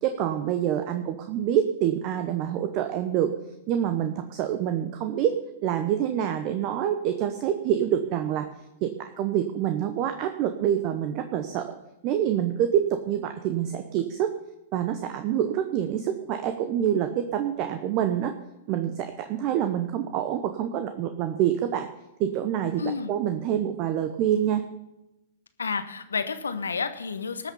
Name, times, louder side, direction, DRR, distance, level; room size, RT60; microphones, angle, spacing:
voice 1, 0.0-3.3 3.7-5.3 5.6-8.4 8.8-8.9 9.2-11.6 12.0-14.3 14.7-18.3 18.7-21.9 22.2-24.6, right 10 dB, 45° right, 7 dB, 1.0 m, -26 dB
voice 2, 22.8-23.1 25.6-27.5, left 5 dB, 85° left, 10 dB, 1.1 m, -30 dB
19.0 x 6.5 x 5.6 m, 0.95 s
hypercardioid pair, 105°, 0 cm